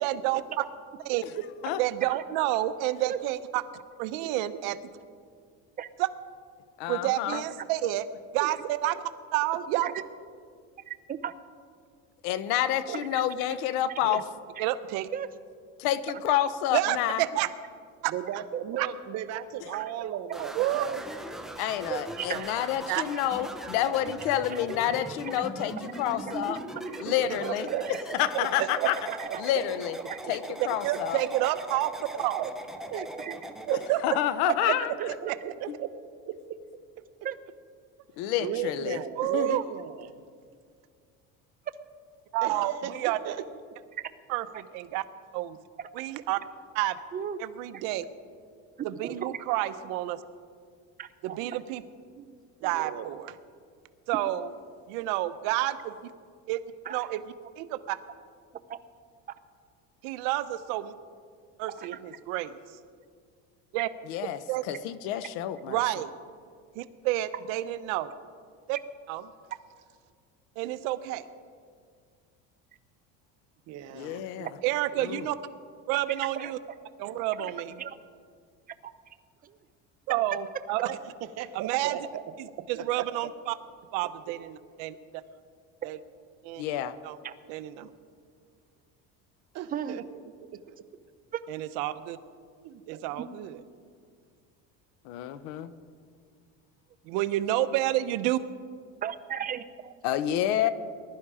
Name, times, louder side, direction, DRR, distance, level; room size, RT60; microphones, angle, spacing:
voice 1, 0.0-0.4 1.1-1.2 1.8-3.6 4.0-4.8 6.0-6.1 6.9-8.0 8.3-9.0 9.3-9.9 14.0-14.2 14.6-15.1 16.7-17.5 18.0-18.1 18.8-18.9 20.5-20.9 22.9-23.0 28.6-28.7 30.6-32.5 33.7-34.2 34.5-34.6 35.1-35.4 39.2-39.6 42.3-43.2 44.3-45.0 45.3-45.6 45.9-46.4 46.7-47.0 47.4-48.0 48.8-50.2 51.2-51.8 52.6-53.3 54.1-54.5 54.9-55.9 56.5-56.6 56.9-57.2 57.6-58.0 60.0-60.9 61.6-62.6 63.7-63.9 64.5-64.6 65.7-66.1 66.8-68.1 68.7-68.8 69.1-69.2 70.6-71.3 74.6-75.4 75.9-76.6 77.0-77.8 80.1-80.9 81.5-82.0 82.4-83.6 83.9-85.0 85.8-86.0 86.4-86.6 87.0-87.2 87.5-87.9 91.5-92.2 92.9-93.6 97.1-98.4, right 15 dB, 85° right, 12 dB, 0.9 m, -29 dB
voice 2, 1.1-1.4 4.2-4.3 8.4-8.5 9.7-9.8 12.9-13.0 18.1-21.0 27.0-27.9 28.4-28.9 29.2-29.6 32.9-33.4 34.7-35.9 36.3-36.6 37.0-37.1 38.4-40.2 42.4-43.4 52.6-53.1 73.7-74.5 74.9-75.1 80.9-82.2 82.6-83.3 89.5-90.0 90.7-90.8 92.6-93.0, right 10 dB, 55° right, 10 dB, 0.9 m, -36 dB
voice 3, 6.8-7.4 12.2-14.2 15.8-17.2 21.6-26.6 27.0-27.7 28.2-29.0 29.4-30.0 30.3-31.2 34.0-34.9 38.2-39.0 39.3-39.6 64.1-65.8 73.9-74.5 75.0-75.3 86.6-87.0 95.0-95.7 100.0-100.7, left 11 dB, 90° left, 14 dB, 0.9 m, -29 dB
voice 4, 10.9-11.3 13.1-13.2 13.5-14.2 14.6-14.7 15.1-15.3 18.5-18.6 19.7-19.8 21.7-22.6 23.1-23.2 24.5-24.6 25.2-25.3 25.6-25.8 26.3-26.4 26.9-27.0 27.8-28.0 28.8-29.4 30.1-30.2 31.4-31.5 33.2-33.3 34.6-34.9 37.2-37.4 43.9-44.0 47.1-47.4 47.7-47.8 49.0-49.4 51.0-51.4 52.2-52.4 56.8-57.1 58.7-58.8 61.8-61.9 76.2-76.5 77.8-78.0 79.4-79.6 85.8-85.9 87.2-87.3 89.7-90.0 91.3-91.4 93.1-93.3 99.0-99.9, right 9 dB, 25° right, 9 dB, 0.6 m, -36 dB
sound 1, 20.3-33.9, right 1 dB, ahead, 0.9 m, -40 dB
20.0 x 11.5 x 4.9 m, 2.1 s
cardioid pair, 135°, 32 cm